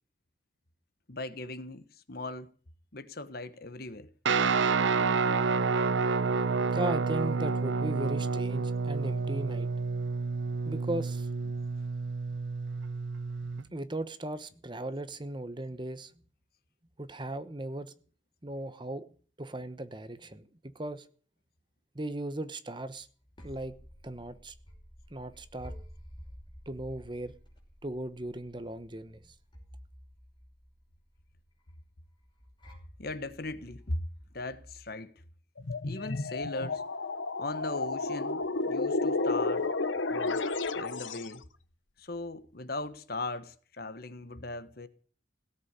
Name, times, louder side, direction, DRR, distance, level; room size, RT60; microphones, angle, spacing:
voice 1, 1.1-2.5 2.9-4.1 13.6-13.7 33.0-34.0 34.3-35.1 35.8-36.8 37.4-39.7 40.1-40.4 40.7-41.4 42.0-44.9, left 2 dB, 50° left, 1.3 m, -38 dB
Guitar, 4.3-13.6, right 4 dB, 75° right, 0.7 m, -29 dB
voice 2, 6.6-9.7 10.6-11.3 13.7-16.1 17.0-17.9 18.4-19.1 19.4-21.0 21.9-23.1 23.4-23.7 24.0-24.5 25.1-25.7 26.7-27.3 27.8-29.2, right 1 dB, 25° right, 1.0 m, -37 dB
sound 1, 23.0-34.9, equal, 25° left, 5.4 m, -52 dB
sound 2, 35.6-41.4, left 3 dB, 80° left, 1.1 m, -31 dB
17.0 x 8.1 x 9.8 m
head